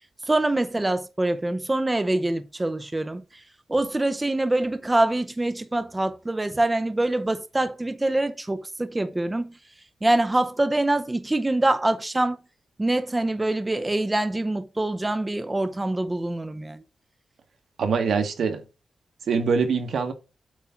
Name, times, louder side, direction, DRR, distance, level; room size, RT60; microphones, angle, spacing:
voice 1, 0.3-3.2 3.7-9.5 10.0-12.4 12.8-16.8, right 2 dB, 15° right, 0.6 m, -24 dB
voice 2, 17.8-18.6 19.3-20.1, right 5 dB, 85° right, 1.4 m, -23 dB
8.2 x 3.6 x 5.7 m
wide cardioid pair, 120°, 0 cm